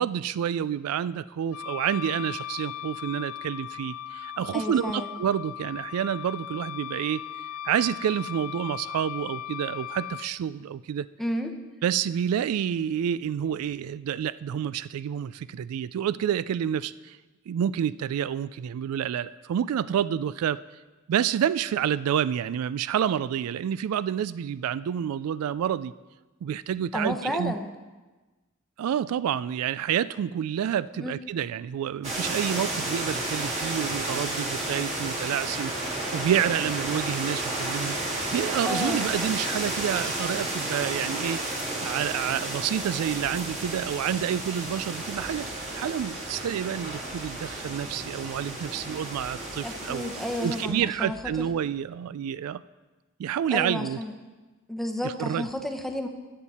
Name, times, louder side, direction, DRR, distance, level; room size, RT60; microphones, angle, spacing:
voice 1, 0.0-7.2 7.7-11.1 11.8-17.2 17.5-20.6 21.1-25.9 26.4-27.5 28.8-38.0 38.3-41.4 41.8-50.1 50.4-52.6 53.2-54.0 55.0-55.5, right 9 dB, 80° right, 17 dB, 0.3 m, -28 dB
Wind instrument woodwind instrument, 1.5-10.3, left 10 dB, 90° left, 0.4 m, -38 dB
voice 2, 4.5-5.1 11.2-11.5 26.9-27.7 30.9-31.1 38.6-39.1 49.6-51.5 53.5-54.1 54.7-56.1, left 1 dB, ahead, 3 dB, 0.8 m, -31 dB
sound 1, 32.0-50.6, right 2 dB, 30° right, 2.2 m, -32 dB
sound 2, 42.6-51.5, right 1 dB, 65° right, 1.4 m, -51 dB
14.5 x 8.0 x 4.2 m, 1.2 s
head